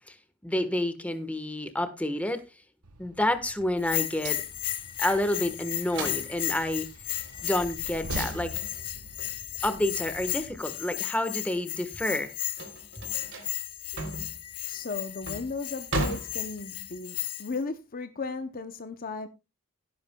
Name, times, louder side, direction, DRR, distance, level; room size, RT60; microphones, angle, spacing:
voice 1, 0.4-2.4 3.0-4.4 5.0-6.9 7.4-8.5 9.6-12.3, left 1 dB, 5° left, 1.2 m, -29 dB
Train, 2.8-10.6, right 2 dB, 85° right, 1.2 m, -44 dB
Bell, 3.8-17.6, left 13 dB, 90° left, 1.2 m, -35 dB
sound 1, 5.9-11.0 11.4-17.0, right 2 dB, 55° right, 3.3 m, -37 dB
voice 2, 14.7-19.3, left 4 dB, 40° left, 0.6 m, -36 dB
16.0 x 11.0 x 2.2 m
head